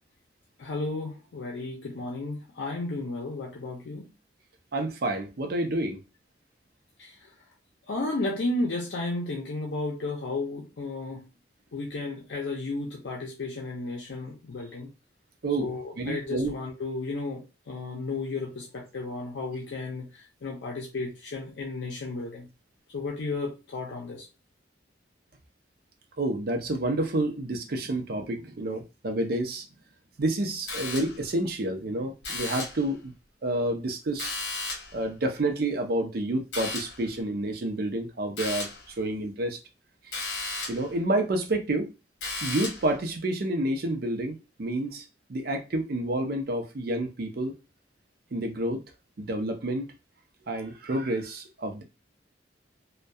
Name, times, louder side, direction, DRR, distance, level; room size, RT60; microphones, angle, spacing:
voice 1, 0.6-4.1 7.0-7.3 7.9-11.3 11.7-14.9 15.6-22.5 22.9-24.3, left 2 dB, 85° left, 0.5 m, -33 dB
voice 2, 4.7-6.0 15.4-15.7 16.0-16.5 26.2-29.6 30.2-33.1 33.4-34.3 34.9-39.6 40.7-41.9 42.4-45.0 45.3-47.5 48.3-48.8 49.2-49.9 50.5-51.8, right 1 dB, 60° right, 0.5 m, -29 dB
sound 1, 30.7-31.3 32.2-32.9 34.2-35.0 36.5-37.1 38.4-38.9 40.1-40.9 42.2-42.9, left 3 dB, 65° left, 0.9 m, -34 dB
2.6 x 2.2 x 2.2 m
head